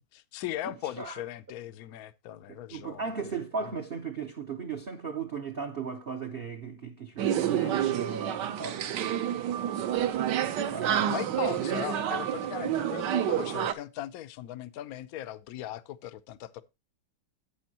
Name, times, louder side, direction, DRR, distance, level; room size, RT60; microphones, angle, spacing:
voice 1, 0.1-3.1 11.1-16.6, left 13 dB, 65° left, 0.9 m, -38 dB
voice 2, 0.6-1.2 2.5-9.3 10.7-11.1, right 5 dB, 45° right, 0.7 m, -37 dB
sound 1, 7.2-13.7, right 10 dB, 65° right, 1.3 m, -29 dB
11.5 x 8.5 x 2.9 m
omnidirectional pair, 2.2 m